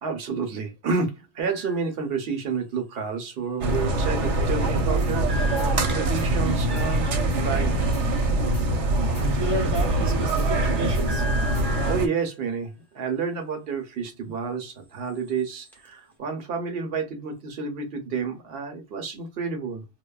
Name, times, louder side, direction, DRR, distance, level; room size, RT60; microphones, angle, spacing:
voice 1, 0.0-7.9 11.8-19.9, right 5 dB, 60° right, 0.9 m, -30 dB
sound 1, 1.4-1.9 5.3-6.5 11.1-12.2 15.0-15.9, left 1 dB, ahead, 0.8 m, -38 dB
sound 2, 3.6-12.1, right 2 dB, 90° right, 0.9 m, -23 dB
sound 3, 5.2-11.9, left 3 dB, 50° left, 0.5 m, -39 dB
voice 2, 9.2-11.3 14.2-14.3, equal, 30° right, 0.6 m, -31 dB
2.8 x 2.1 x 2.2 m
omnidirectional pair, 1.2 m